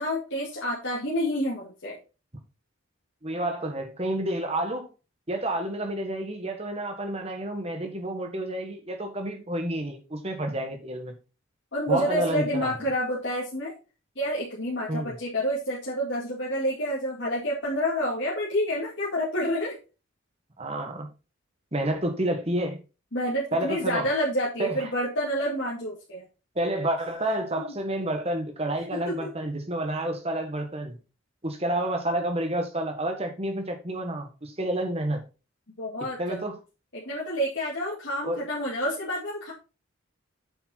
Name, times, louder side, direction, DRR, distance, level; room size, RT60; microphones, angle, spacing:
voice 1, 0.0-2.0 11.7-13.7 14.2-19.8 23.1-26.2 28.9-29.3 35.8-36.4 36.9-39.5, equal, 55° left, 2.1 m, -28 dB
voice 2, 3.2-4.9 5.3-11.2 11.9-12.7 14.9-15.2 20.6-21.1 21.7-22.8 23.5-24.1 24.6-24.9 26.6-31.0 31.4-35.2 36.2-36.6 38.2-38.5, right 1 dB, 30° right, 1.6 m, -29 dB
8.1 x 5.6 x 4.3 m
head